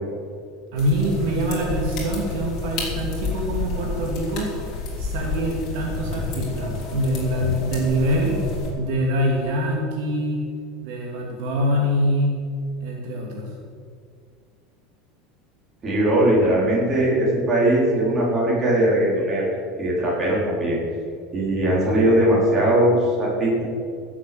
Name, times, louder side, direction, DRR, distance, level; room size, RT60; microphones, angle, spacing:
voice 1, 0.7-4.5 5.0-8.4 8.8-10.4 10.8-12.4 12.8-13.5, equal, 60° right, -1 dB, 2.3 m, -24 dB
sound 1, 0.8-8.7, left 3 dB, 35° left, 3.5 m, -30 dB
voice 2, 15.8-19.5 19.8-20.8 21.3-23.6, right 1 dB, 20° right, -6 dB, 4.3 m, -20 dB
16.0 x 7.4 x 7.8 m, 2.2 s
supercardioid pair, 175°, 0 cm